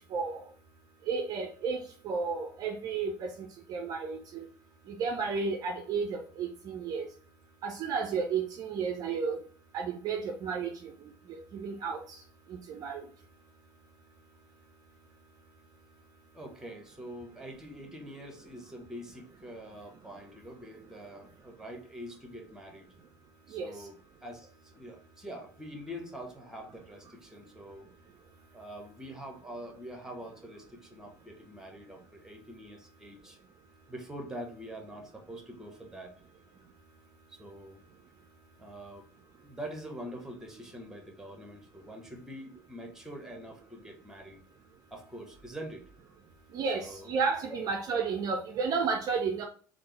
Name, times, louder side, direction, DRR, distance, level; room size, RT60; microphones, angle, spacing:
voice 1, 0.1-0.4 1.1-4.4 5.0-7.0 7.6-9.4 9.7-10.9 11.3-12.0 12.7-13.0 23.5-23.7 46.5-49.4, right 5 dB, 45° right, 0.4 m, -32 dB
voice 2, 16.3-22.9 23.5-27.9 28.5-33.4 33.9-36.1 37.3-37.8 38.6-39.1 39.4-44.4 44.9-45.9 46.6-47.1, equal, 5° right, 1.0 m, -45 dB
3.4 x 2.1 x 3.2 m
figure-of-eight pair, 65°, 9 cm